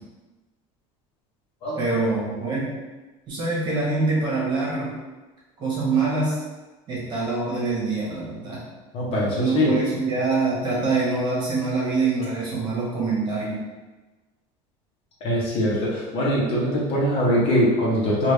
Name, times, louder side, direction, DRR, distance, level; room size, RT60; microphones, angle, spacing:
voice 1, 1.8-2.7 3.3-4.9 5.6-6.4 6.9-8.6 9.3-13.6, right 3 dB, 35° right, -6 dB, 1.2 m, -24 dB
voice 2, 8.9-9.7 15.2-18.3, equal, 45° left, -5 dB, 1.0 m, -22 dB
3.4 x 2.5 x 3.2 m, 1.2 s
cardioid pair, 150°, 13 cm